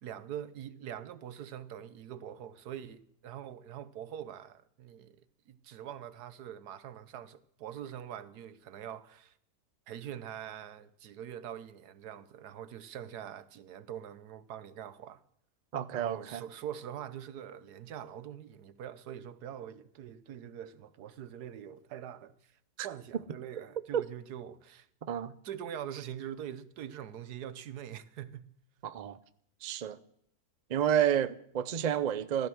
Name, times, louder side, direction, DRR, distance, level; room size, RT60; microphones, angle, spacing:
voice 1, 0.0-9.3 9.9-15.2 15.9-22.5 22.8-24.9 25.4-28.5, right 10 dB, 85° right, 1.4 m, -44 dB
voice 2, 15.7-16.4 22.8-22.9 23.9-24.0 25.1-25.3 28.8-29.2 29.6-30.0 30.7-32.5, right 9 dB, 50° right, 0.5 m, -30 dB
15.5 x 13.0 x 6.2 m
omnidirectional pair, 1.6 m